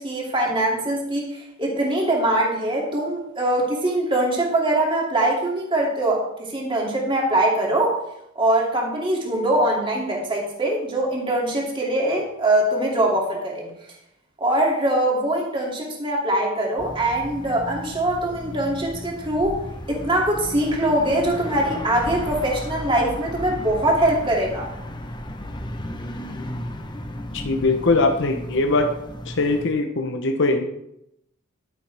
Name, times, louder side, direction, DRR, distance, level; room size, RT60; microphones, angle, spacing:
voice 1, 0.0-8.0 8.3-13.7 14.4-19.6 19.9-24.7, right 1 dB, 25° right, -2 dB, 2.6 m, -22 dB
sound 1, 16.8-29.7, left 1 dB, 20° left, 0.9 m, -35 dB
voice 2, 27.3-28.9 29.3-30.6, left 3 dB, 60° left, 5 dB, 0.9 m, -21 dB
11.5 x 10.0 x 3.5 m, 0.80 s
head